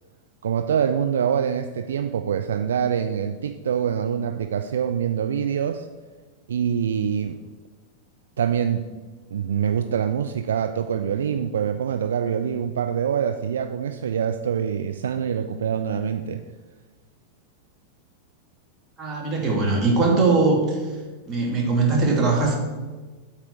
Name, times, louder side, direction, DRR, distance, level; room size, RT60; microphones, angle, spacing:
voice 1, 0.4-5.9 6.5-7.4 8.4-8.9 9.3-16.4, right 8 dB, 65° right, 8 dB, 0.3 m, -25 dB
voice 2, 19.0-20.8 21.3-22.5, right 3 dB, 25° right, -2 dB, 2.2 m, -20 dB
7.7 x 4.4 x 5.9 m, 1.3 s
figure-of-eight pair, 90°, 0 cm